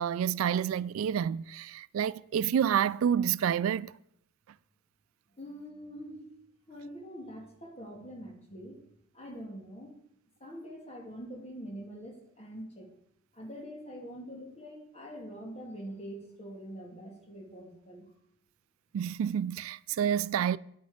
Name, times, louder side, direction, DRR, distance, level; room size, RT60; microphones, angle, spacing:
voice 1, 0.0-3.9 18.9-20.6, right 8 dB, 85° right, 0.3 m, -29 dB
voice 2, 5.4-6.3 6.7-8.8 9.1-10.0 10.4-12.9 13.3-18.1, equal, 30° left, 2.3 m, -44 dB
9.5 x 9.2 x 5.0 m
head